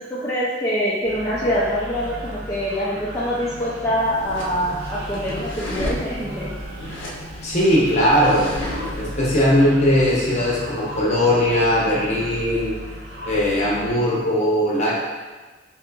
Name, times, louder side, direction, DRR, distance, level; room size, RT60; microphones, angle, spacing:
voice 1, 0.1-6.5, equal, 20° left, -9 dB, 0.4 m, -24 dB
sound 1, 1.0-13.9, equal, 60° right, 0.6 m, -35 dB
sound 2, 4.0-9.1, left 1 dB, 85° left, 0.5 m, -33 dB
voice 2, 7.4-8.5 9.0-12.7 13.3-14.9, equal, 35° left, -5 dB, 0.8 m, -19 dB
3.6 x 2.7 x 2.3 m, 1.3 s
head